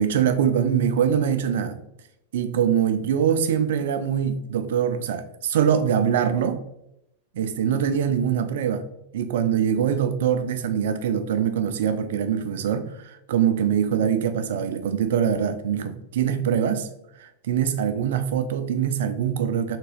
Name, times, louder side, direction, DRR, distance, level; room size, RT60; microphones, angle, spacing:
voice 1, 0.0-1.8 2.3-6.6 7.3-8.8 9.1-16.9 17.2-19.8, right 8 dB, 55° right, 0.3 m, -23 dB
3.5 x 2.9 x 3.0 m
figure-of-eight pair, 90°, 0 cm